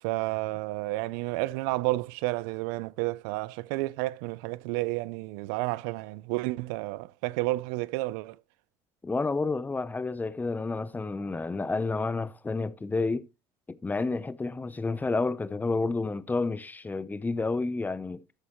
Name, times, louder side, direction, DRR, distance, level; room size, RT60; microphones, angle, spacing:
voice 1, 0.0-8.4, right 20 dB, 85° right, 0.4 m, -31 dB
voice 2, 9.0-13.3 13.7-18.2, left 3 dB, 15° left, 0.6 m, -30 dB
12.5 x 7.0 x 3.0 m
supercardioid pair, 90°, 11 cm